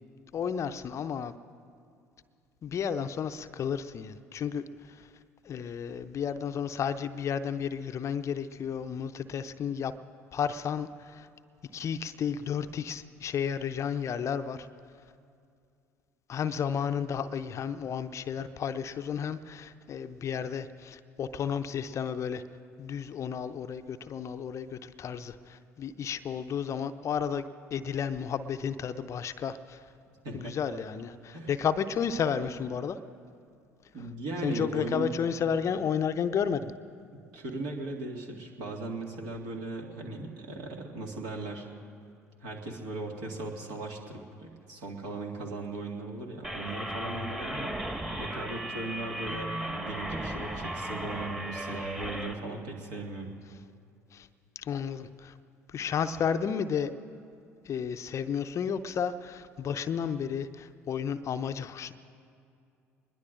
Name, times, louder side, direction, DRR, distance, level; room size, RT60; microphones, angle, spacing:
voice 1, 0.3-1.3 2.6-5.1 5.4-9.9 10.3-11.3 11.7-14.7 16.3-22.4 22.8-27.5 27.7-29.9 30.3-33.0 34.4-36.7 54.1-54.3 54.6-55.4 55.7-56.9 57.6-61.9, left 7 dB, 40° left, 11 dB, 0.6 m, -32 dB
voice 2, 30.2-30.6 31.3-31.5 33.9-35.1 37.1-41.7 42.4-53.3, right 2 dB, 60° right, 0 dB, 2.2 m, -38 dB
sound 1, 46.4-52.3, right 1 dB, 10° right, 1.7 m, -36 dB
24.5 x 21.0 x 2.6 m, 2.4 s
figure-of-eight pair, 55°, 8 cm